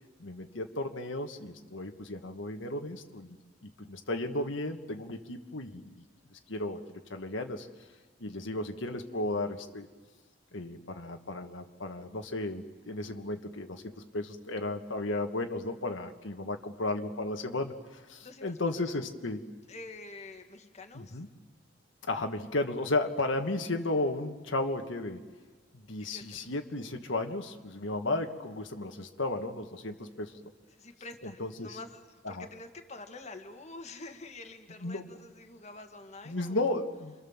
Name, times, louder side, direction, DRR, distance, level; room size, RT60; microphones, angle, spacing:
voice 1, 0.2-6.0 6.3-6.8 7.1-7.7 8.2-9.9 10.5-13.8 14.1-19.4 20.9-21.3 22.1-25.2 25.7-30.3 31.2-31.8 32.2-32.5 34.8-35.1 36.3-37.1, left 2 dB, 85° left, 4 dB, 1.7 m, -34 dB
voice 2, 18.2-18.9 19.7-21.2 26.0-26.4 30.8-36.8, left 2 dB, 35° left, 4 dB, 1.7 m, -47 dB
29.0 x 25.5 x 7.3 m, 1.4 s
head